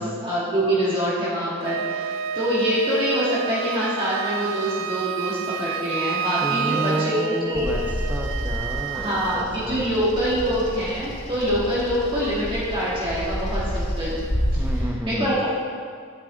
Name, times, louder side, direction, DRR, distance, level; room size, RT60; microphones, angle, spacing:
voice 1, 0.0-7.2 7.5-7.7 8.9-14.2 15.1-15.4, equal, 25° right, -9 dB, 2.1 m, -25 dB
Wind instrument woodwind instrument, 1.6-9.5, right 7 dB, 70° right, 0.4 m, -30 dB
voice 2, 6.4-9.8 14.5-15.4, equal, 10° right, 0 dB, 0.9 m, -30 dB
Bird vocalization bird call bird song, 7.5-14.8, equal, 60° left, 1.8 m, -29 dB
9.7 x 8.7 x 3.9 m, 2.2 s
head